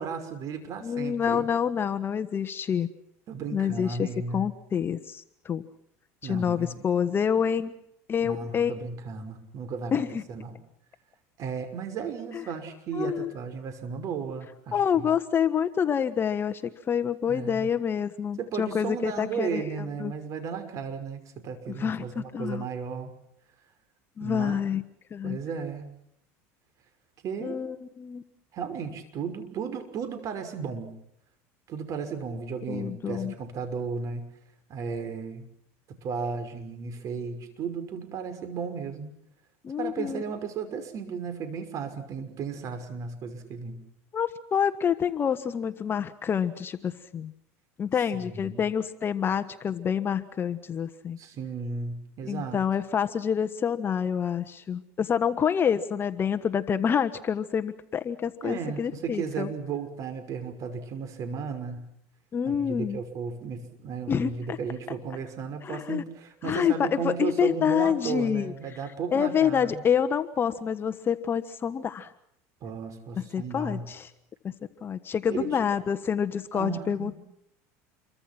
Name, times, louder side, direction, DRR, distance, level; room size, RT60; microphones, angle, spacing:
voice 1, 0.0-1.5 3.3-4.5 6.2-6.8 8.2-10.0 10.3-10.5 11.4-15.1 17.3-17.7 18.4-23.1 24.2-24.6 25.2-25.8 27.2-27.6 28.5-30.9 31.7-34.3 34.7-35.5 36.0-39.1 39.8-43.8 48.1-48.7 51.2-52.6 58.4-61.8 62.5-69.8 72.6-73.8 75.3-75.6 76.5-77.2, right 6 dB, 45° right, 8 dB, 5.7 m, -34 dB
voice 2, 0.8-2.9 3.5-4.1 4.3-5.6 6.2-7.7 8.1-8.8 9.9-10.2 12.3-12.4 12.9-13.3 14.7-20.1 21.8-22.6 24.2-24.8 25.1-25.4 27.4-28.2 32.7-33.3 39.6-40.2 44.1-47.3 47.8-51.2 52.3-59.5 62.3-63.0 64.1-64.6 65.6-66.0 66.4-68.5 69.1-72.1 73.2-74.1 74.4-74.5 74.8-77.2, left 8 dB, 30° left, 9 dB, 1.3 m, -27 dB
28.5 x 24.0 x 6.1 m, 0.72 s
supercardioid pair, 110°, 8 cm